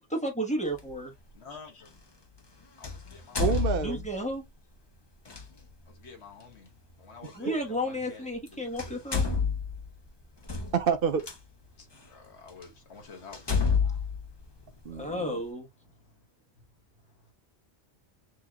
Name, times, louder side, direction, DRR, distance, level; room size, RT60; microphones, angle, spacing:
voice 1, 0.1-1.1 3.8-4.4 7.4-9.2 14.9-15.7, equal, 5° left, 1.2 m, -32 dB
sound 1, 0.7-0.9 2.8-4.3 5.2-5.4 7.3-7.4 8.3-8.5 8.8-11.4 12.0-12.1 12.6-12.7 13.3-15.1, left 5 dB, 30° left, 0.6 m, -29 dB
voice 2, 1.3-1.9 2.8-3.6 5.9-6.7 7.0-9.0 11.8-14.1 15.0-15.4 15.9-16.1, left 4 dB, 90° left, 1.5 m, -50 dB
voice 3, 3.4-4.1 7.4-7.6 10.7-11.2 14.9-15.4, right 7 dB, 65° right, 0.8 m, -28 dB
6.3 x 2.8 x 2.3 m
omnidirectional pair, 1.1 m